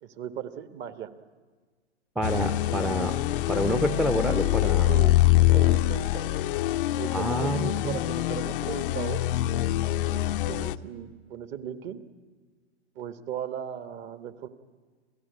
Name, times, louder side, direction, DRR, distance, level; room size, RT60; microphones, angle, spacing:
voice 1, 0.0-1.1 4.9-6.2 7.0-9.2 10.1-12.0 12.9-14.5, right 9 dB, 35° right, 10 dB, 1.5 m, -37 dB
sound 1, 2.2-10.7, left 14 dB, 50° left, 0.8 m, -24 dB
voice 2, 2.2-3.2 3.5-5.0 7.1-8.0, equal, ahead, 6 dB, 0.8 m, -28 dB
28.0 x 15.5 x 9.5 m, 1.5 s
hypercardioid pair, 115°, 34 cm